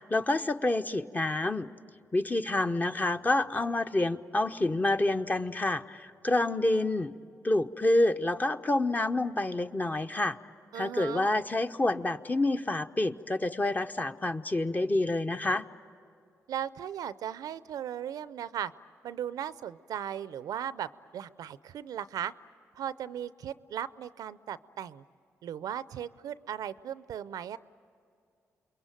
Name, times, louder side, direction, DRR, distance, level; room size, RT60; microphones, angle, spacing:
voice 1, 0.0-1.7 2.1-7.1 7.4-10.4 10.7-15.6, left 2 dB, 25° left, 8 dB, 0.9 m, -28 dB
voice 2, 10.7-11.3 16.5-18.7 19.0-22.3 22.8-25.0 25.4-27.6, right 9 dB, 80° right, 16 dB, 0.6 m, -37 dB
28.5 x 22.0 x 9.1 m, 2.4 s
supercardioid pair, 55°, 6 cm